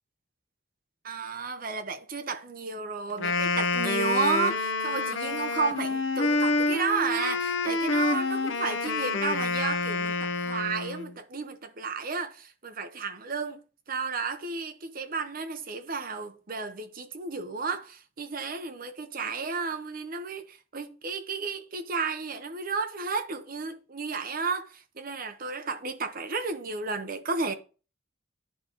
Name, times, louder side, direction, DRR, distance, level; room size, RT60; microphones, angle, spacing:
voice 1, 1.0-27.5, right 4 dB, 50° right, 0.9 m, -32 dB
Wind instrument woodwind instrument, 3.1-11.1, left 3 dB, 85° left, 0.7 m, -28 dB
10.5 x 3.8 x 3.0 m
head